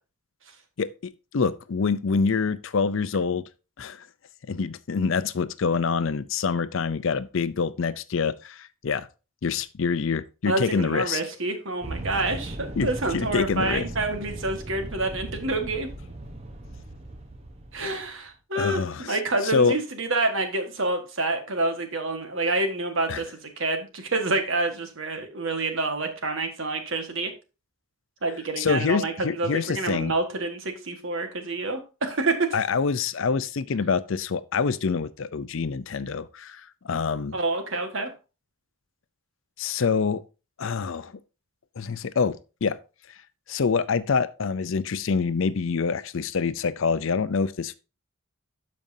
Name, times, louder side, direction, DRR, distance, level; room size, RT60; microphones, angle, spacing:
voice 1, 0.8-3.4 3.8-4.1 4.5-9.1 9.4-11.2 12.8-13.8 18.6-19.2 19.4-19.8 23.1-23.2 28.6-30.1 32.5-37.4 39.6-40.2 40.6-41.1 41.8-42.8 43.1-43.2 43.5-47.7, left 5 dB, 60° left, 0.5 m, -26 dB
voice 2, 10.4-15.9 17.7-27.3 28.2-32.5 37.3-38.1, right 2 dB, 60° right, 1.5 m, -28 dB
sound 1, 11.8-18.3, right 1 dB, 30° right, 0.9 m, -37 dB
12.5 x 5.2 x 2.7 m
head